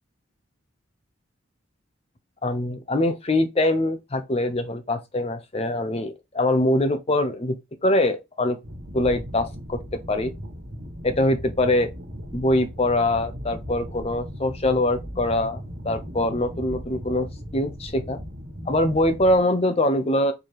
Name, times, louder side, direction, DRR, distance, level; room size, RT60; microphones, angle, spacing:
voice 1, 2.4-8.6 8.9-10.3 11.0-11.9 12.3-18.2 18.7-20.3, left 1 dB, 30° left, 0.7 m, -23 dB
sound 1, 8.6-19.4, equal, 80° right, 1.5 m, -37 dB
4.5 x 3.4 x 2.9 m
head